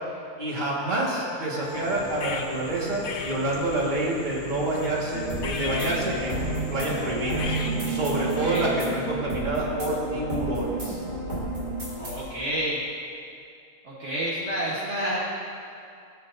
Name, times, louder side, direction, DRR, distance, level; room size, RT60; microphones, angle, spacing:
voice 1, 0.4-7.4 7.8-11.0, right 2 dB, 30° right, -4 dB, 1.8 m, -28 dB
sound 1, 0.8-3.4, left 6 dB, 75° left, 1.2 m, -43 dB
sound 2, 1.6-8.9, left 3 dB, 50° left, 0.7 m, -36 dB
sound 3, 5.1-12.2, right 2 dB, 80° right, 3.5 m, -31 dB
voice 2, 8.2-8.6 12.0-12.8 13.8-15.2, equal, 50° right, -7 dB, 1.5 m, -29 dB
17.0 x 8.4 x 2.6 m, 2.5 s
omnidirectional pair, 1.6 m